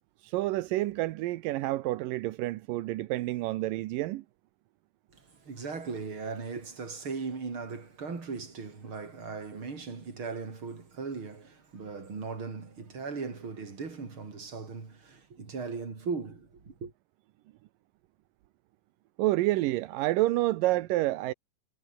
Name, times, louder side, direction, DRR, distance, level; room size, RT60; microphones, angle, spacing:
voice 1, 0.2-4.2 19.2-21.3, right 17 dB, 85° right, 2.5 m, -29 dB
voice 2, 5.1-16.9, right 4 dB, 35° right, 4.8 m, -38 dB
omnidirectional pair, 3.8 m